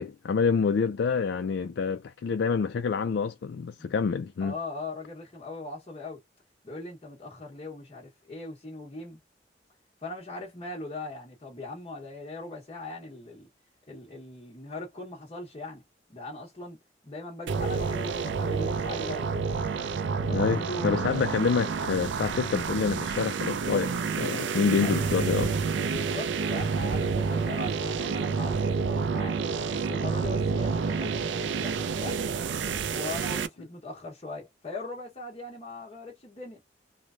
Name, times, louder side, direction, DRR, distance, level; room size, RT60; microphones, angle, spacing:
voice 1, 0.0-4.5 20.2-25.5, left 5 dB, 70° left, 0.3 m, -27 dB
voice 2, 4.4-6.2 6.6-9.2 10.0-13.5 13.9-15.8 16.1-19.3 20.3-21.3 24.8-25.1 25.9-29.4 29.7-32.2 32.9-36.6, left 2 dB, 35° left, 1.0 m, -40 dB
sound 1, 17.5-33.5, right 5 dB, 85° right, 0.4 m, -29 dB
3.1 x 2.1 x 2.4 m
head